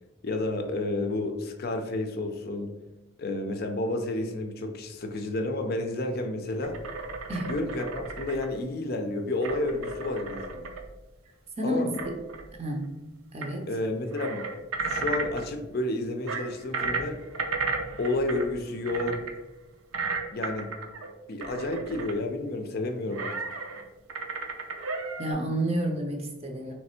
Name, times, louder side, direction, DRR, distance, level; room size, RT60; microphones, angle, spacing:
voice 1, 0.2-2.7 3.2-6.8 7.5-10.7 11.6-11.9 13.7-14.5 14.8-17.2 18.0-19.2 20.3-20.7 21.3-23.3, left 2 dB, 45° left, 5 dB, 0.5 m, -30 dB
sound 1, 6.6-8.6 9.4-10.9 11.8-12.5 13.4-13.5 13.7-13.8 14.1-15.5 16.3-18.6 18.9-19.3 19.9-21.1 21.4-22.2 23.1-23.8 24.1-25.3, right 4 dB, 80° right, 0.6 m, -34 dB
voice 2, 11.6-12.2 12.6-13.0 13.3-13.7 25.2-26.7, right 1 dB, 30° right, 2 dB, 0.6 m, -30 dB
3.3 x 3.2 x 4.2 m, 1.0 s
head